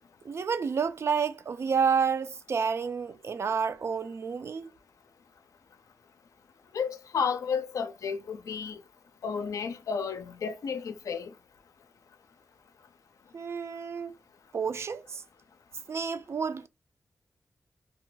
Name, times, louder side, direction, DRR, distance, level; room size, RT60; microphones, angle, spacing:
voice 1, 0.2-4.7 13.3-14.1 14.5-15.2 15.9-16.7, right 6 dB, 55° right, 0.3 m, -30 dB
voice 2, 6.7-8.8 9.2-11.3, left 6 dB, 90° left, 0.4 m, -32 dB
2.3 x 2.2 x 3.9 m
wide cardioid pair, 125°, 5 cm